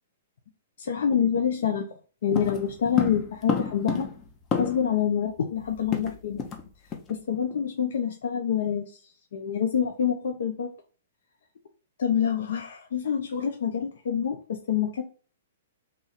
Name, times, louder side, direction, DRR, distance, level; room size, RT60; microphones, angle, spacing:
voice 1, 0.8-1.9 2.2-4.1 4.6-6.4 7.1-8.8 9.3-10.7 12.0-14.4 14.7-15.0, left 8 dB, 70° left, 4 dB, 0.5 m, -26 dB
sound 1, 2.3-5.0 5.3-5.4 5.6-6.6 6.9-7.1 7.5-7.7, left 5 dB, 25° left, 0.7 m, -30 dB
3.0 x 2.4 x 4.0 m, 0.40 s
hypercardioid pair, 135°, 0 cm